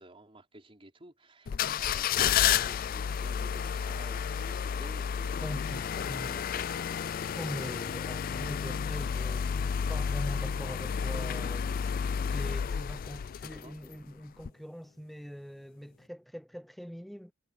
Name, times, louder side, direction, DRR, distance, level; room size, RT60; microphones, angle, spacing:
voice 1, 0.0-7.2 13.6-13.7, right 1 dB, 25° right, 4.3 m, -53 dB
sound 1, 1.5-13.9 14.4-14.5, left 8 dB, 45° left, 0.3 m, -31 dB
voice 2, 5.4-6.4 7.3-12.0 12.3-17.3, equal, ahead, 0.7 m, -42 dB
head